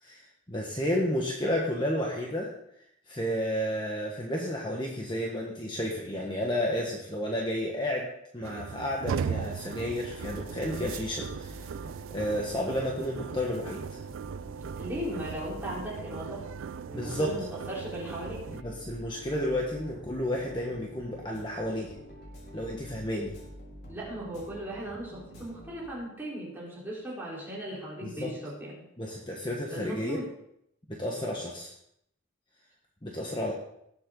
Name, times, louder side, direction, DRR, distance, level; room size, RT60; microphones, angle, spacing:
voice 1, 0.0-2.5 3.1-11.7 12.1-14.0 16.9-17.3 18.6-21.9 22.5-23.4 28.0-28.3 29.0-30.2 30.9-31.7 33.0-33.5, equal, 20° left, -2 dB, 1.5 m, -32 dB
sound 1, 8.4-18.6, right 6 dB, 75° right, 0.4 m, -38 dB
sound 2, 9.8-26.3, equal, 50° left, 4.2 m, -48 dB
voice 2, 14.8-16.5 16.9-18.5 23.9-28.8 29.7-30.3, equal, 10° right, -6 dB, 4.2 m, -37 dB
19.0 x 7.9 x 4.0 m, 0.75 s
head